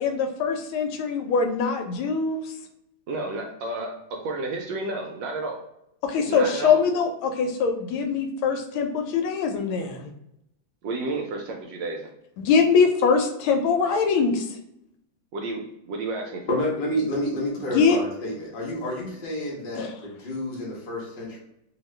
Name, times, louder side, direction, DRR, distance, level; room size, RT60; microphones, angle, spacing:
voice 1, 0.0-2.5 6.0-10.1 12.4-14.5 17.7-18.0 19.8-19.9, left 5 dB, 85° left, 5 dB, 1.4 m, -23 dB
voice 2, 3.1-5.6 6.3-6.8 10.8-12.1 15.3-16.6, right 2 dB, 75° right, 2 dB, 1.1 m, -31 dB
voice 3, 16.5-21.4, left 1 dB, 60° left, -5 dB, 0.5 m, -29 dB
2.9 x 2.8 x 3.2 m, 0.81 s
omnidirectional pair, 2.2 m